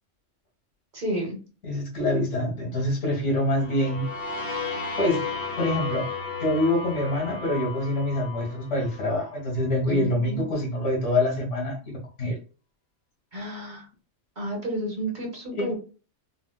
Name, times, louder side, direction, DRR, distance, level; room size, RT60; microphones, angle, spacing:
voice 1, 0.9-1.4 9.9-10.5 13.3-13.9 14.4-15.8, right 1 dB, 40° right, 0 dB, 1.0 m, -31 dB
voice 2, 1.6-4.1 5.0-5.2 5.6-6.1 6.4-12.4 15.5-15.7, left 1 dB, 70° left, -1 dB, 1.6 m, -25 dB
sound 1, 3.5-9.3, left 4 dB, 50° left, 1.0 m, -34 dB
4.7 x 2.0 x 2.2 m, 0.35 s
omnidirectional pair, 1.3 m